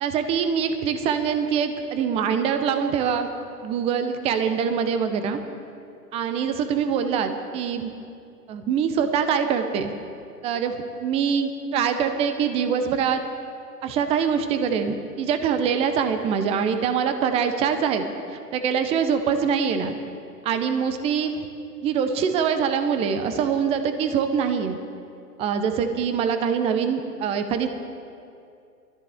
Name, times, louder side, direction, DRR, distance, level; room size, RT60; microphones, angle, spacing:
voice 1, 0.0-3.3 3.6-5.4 6.1-7.9 8.5-9.9 10.4-10.8 11.0-13.2 13.8-18.0 18.3-20.0 20.4-21.4 21.8-24.8 25.4-27.7, right 7 dB, 15° right, 8 dB, 0.5 m, -24 dB
22.5 x 13.5 x 3.5 m, 2.5 s
hypercardioid pair, 125°, 49 cm